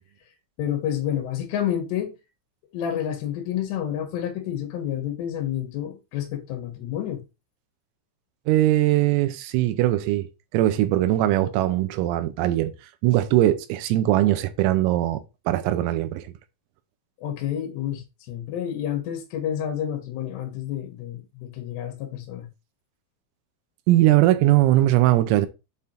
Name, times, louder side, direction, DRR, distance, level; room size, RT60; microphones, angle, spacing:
voice 1, 0.6-2.1 2.7-7.2 17.2-22.5, left 10 dB, 70° left, 2.9 m, -29 dB
voice 2, 8.5-10.3 10.5-12.7 13.0-16.3 23.9-25.5, right 15 dB, 90° right, 3.5 m, -20 dB
7.9 x 3.6 x 4.3 m
omnidirectional pair, 5.8 m